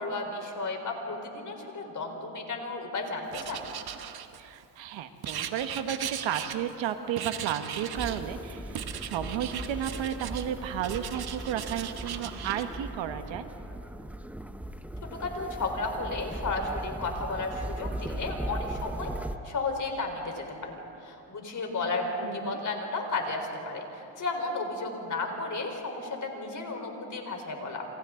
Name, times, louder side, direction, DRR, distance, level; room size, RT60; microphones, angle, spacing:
voice 1, 0.0-3.6 15.2-19.1 19.4-27.8, left 3 dB, 40° left, 3 dB, 4.3 m, -33 dB
Writing, 3.3-4.6 5.2-6.9 7.2-8.2 8.8-10.5 10.8-12.7, right 9 dB, 50° right, 1.3 m, -38 dB
voice 2, 4.4-13.4 22.2-22.6, right 9 dB, 65° right, 8 dB, 1.4 m, -33 dB
sound 1, 7.9-19.4, right 1 dB, 5° right, 0.8 m, -38 dB
28.5 x 27.5 x 3.9 m, 2.8 s
cardioid pair, 100°, 48 cm